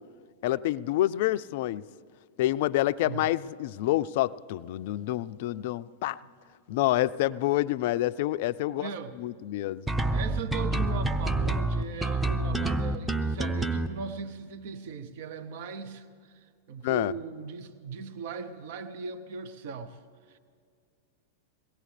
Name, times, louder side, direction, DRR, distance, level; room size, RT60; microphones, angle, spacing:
voice 1, 0.4-1.8 2.4-6.2 6.7-8.9 9.2-9.8 16.8-17.1, left 15 dB, 60° left, 16 dB, 0.3 m, -27 dB
voice 2, 8.7-9.1 10.1-16.4 16.7-20.0 20.3-20.4, right 5 dB, 60° right, 10 dB, 0.8 m, -39 dB
sound 1, 9.9-13.9, right 2 dB, 5° right, 0.7 m, -27 dB
22.5 x 18.0 x 3.3 m, 2.1 s
hypercardioid pair, 100°, 0 cm